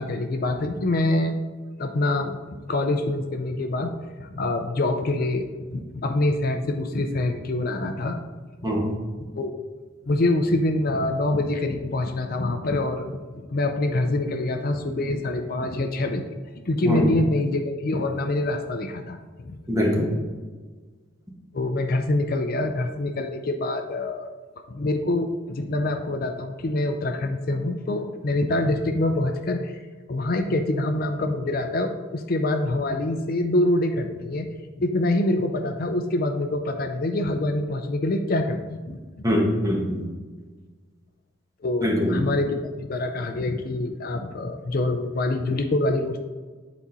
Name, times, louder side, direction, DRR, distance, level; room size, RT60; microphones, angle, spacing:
voice 1, 0.0-1.4 1.8-3.9 4.2-8.2 9.2-9.5 10.0-16.3 16.6-19.6 21.5-24.3 24.7-29.7 30.1-39.0 41.6-46.2, left 2 dB, 45° left, 5 dB, 0.5 m, -25 dB
voice 2, 19.7-20.1 39.2-40.1 41.8-42.2, equal, 15° right, -1 dB, 1.2 m, -23 dB
8.5 x 4.2 x 4.0 m, 1.4 s
head